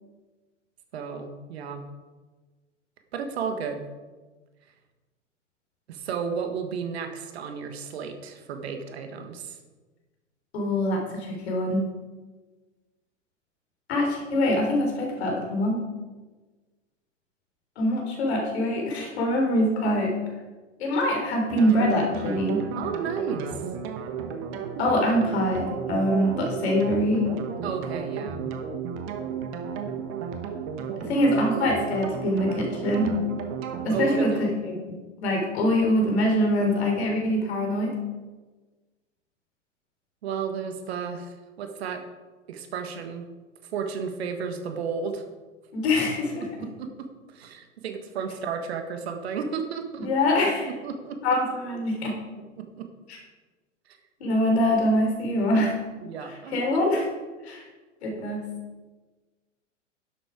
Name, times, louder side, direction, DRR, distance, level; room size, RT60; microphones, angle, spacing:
voice 1, 0.9-1.8 3.1-3.8 5.9-9.6 22.8-23.6 27.6-28.5 33.9-34.5 40.2-42.0 42.5-43.3 43.7-45.2 46.3-46.9 47.3-50.3 50.6-51.2 52.5-52.9 56.0-56.8, right 6 dB, 55° right, 6 dB, 1.6 m, -33 dB
voice 2, 10.5-11.8 13.9-15.8 17.8-20.2 20.8-22.7 24.8-27.3 31.0-33.2 33.8-38.0 45.7-46.7 50.0-50.7 51.2-52.2 53.1-53.2 54.2-55.7 56.5-57.0 57.4-57.6 58.0-58.5, left 1 dB, 55° left, 1 dB, 3.7 m, -24 dB
sound 1, 21.5-34.2, right 6 dB, 35° right, 1.3 m, -33 dB
11.0 x 7.9 x 4.9 m, 1.3 s
figure-of-eight pair, 100°, 37 cm